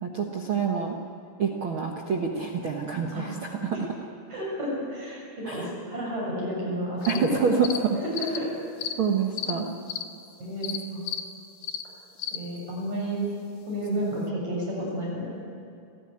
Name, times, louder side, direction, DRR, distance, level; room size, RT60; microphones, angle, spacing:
voice 1, 0.0-0.9 1.4-3.8 5.4-5.7 7.1-8.0 9.0-9.7, right 5 dB, 75° right, 1 dB, 1.1 m, -27 dB
voice 2, 4.3-7.3 8.0-8.5 9.4-9.6 10.4-11.0 12.3-13.2 13.7-15.3, equal, 45° right, -3 dB, 8.6 m, -31 dB
sound 1, 7.0-7.2 7.6-7.8 8.1-8.4 8.8-8.9 9.4-9.5 9.9-10.0 10.6-10.8 11.1-11.2 11.6-11.8 12.2-12.4, left 11 dB, 70° left, 1.9 m, -32 dB
29.0 x 13.0 x 9.6 m, 2.5 s
omnidirectional pair, 4.5 m